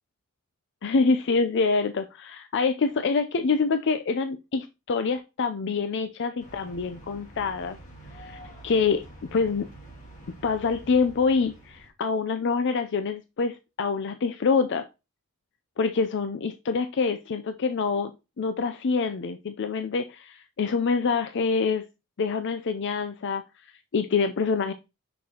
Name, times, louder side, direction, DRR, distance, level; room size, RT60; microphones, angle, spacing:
voice 1, 0.8-7.8 8.1-9.0 9.3-9.7 10.4-14.9 15.8-18.1 18.4-21.8 22.2-24.7, left 4 dB, 55° left, 9 dB, 0.5 m, -26 dB
sound 1, 6.4-11.9, right 1 dB, 35° left, 1.8 m, -47 dB
6.1 x 6.0 x 2.9 m, 0.26 s
head